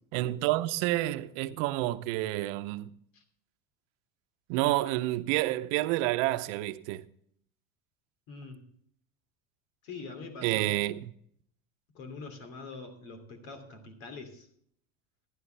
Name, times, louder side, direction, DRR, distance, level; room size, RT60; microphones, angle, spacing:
voice 1, 0.1-2.9 4.5-7.1 10.4-11.1, right 17 dB, 70° right, 0.8 m, -29 dB
voice 2, 8.3-8.6 9.8-10.8 11.9-14.5, left 4 dB, 75° left, 3.0 m, -44 dB
14.5 x 11.0 x 3.4 m
hypercardioid pair, 90°, 39 cm